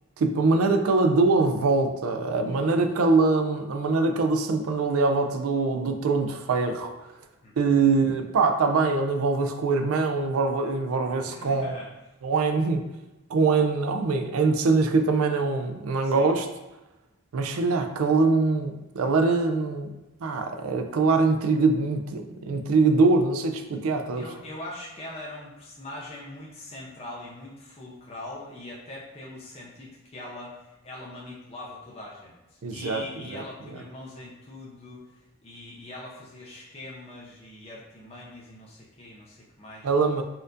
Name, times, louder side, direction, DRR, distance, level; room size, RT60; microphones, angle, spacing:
voice 1, 0.2-6.9 7.6-11.8 12.2-12.9 13.3-16.5 17.3-19.9 20.2-24.2 32.6-33.4 39.8-40.2, right 3 dB, 80° right, 6 dB, 0.4 m, -23 dB
voice 2, 7.4-7.9 11.3-11.9 16.0-16.3 24.1-39.9, left 1 dB, 30° left, -5 dB, 0.5 m, -42 dB
4.3 x 2.4 x 2.6 m, 1.0 s
head